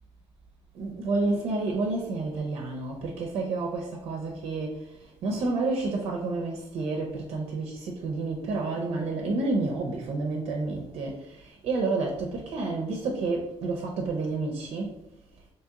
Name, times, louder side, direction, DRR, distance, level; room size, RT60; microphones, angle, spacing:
voice 1, 0.7-15.0, right 3 dB, 60° right, 0.6 m, -30 dB
2.9 x 2.8 x 3.6 m
cardioid pair, 145°, 11 cm